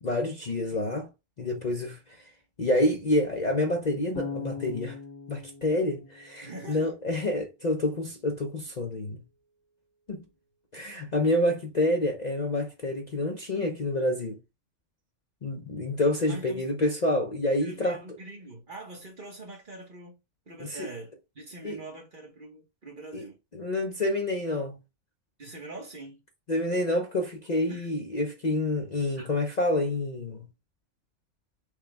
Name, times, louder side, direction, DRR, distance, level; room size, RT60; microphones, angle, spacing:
voice 1, 0.0-1.1 1.4-2.0 2.6-5.0 5.3-9.2 10.1-10.2 10.7-14.4 15.4-18.0 20.6-20.9 21.6-21.8 23.1-23.2 23.5-24.8 26.5-30.5, left 1 dB, 40° left, 0.8 m, -28 dB
Bass guitar, 4.1-7.2, left 5 dB, 85° left, 1.6 m, -40 dB
voice 2, 6.4-6.9 16.3-16.6 17.6-20.2 20.5-23.4 25.4-26.2 27.6-27.9 29.2-29.3, right 2 dB, 40° right, 1.4 m, -43 dB
6.3 x 2.5 x 3.3 m
omnidirectional pair, 1.4 m